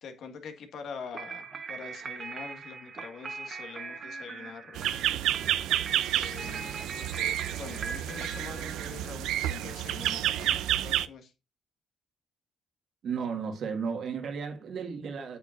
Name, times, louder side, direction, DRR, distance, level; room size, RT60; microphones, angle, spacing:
voice 1, 0.0-4.9 6.1-11.3, left 6 dB, 70° left, 1.8 m, -44 dB
sound 1, 1.1-9.5, right 5 dB, 45° right, 1.4 m, -41 dB
sound 2, 4.8-11.1, right 12 dB, 90° right, 0.5 m, -30 dB
voice 2, 13.0-15.4, right 6 dB, 65° right, 1.8 m, -34 dB
8.5 x 7.2 x 2.6 m
cardioid pair, 90°, 0 cm